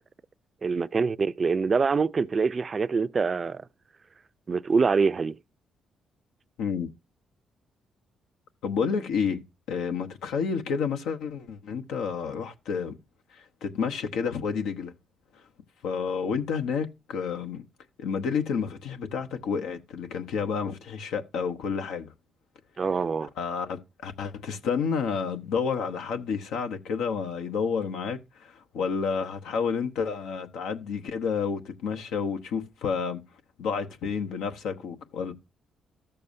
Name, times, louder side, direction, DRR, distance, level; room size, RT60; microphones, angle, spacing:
voice 1, 0.6-3.7 4.5-5.4 22.8-23.3, right 5 dB, 35° right, 0.4 m, -25 dB
voice 2, 6.6-6.9 8.6-9.4 9.7-13.0 13.3-14.9 15.8-17.6 18.0-22.1 23.4-33.2 33.6-35.3, left 6 dB, 90° left, 0.9 m, -30 dB
14.0 x 6.8 x 2.6 m
cardioid pair, 90°, 0 cm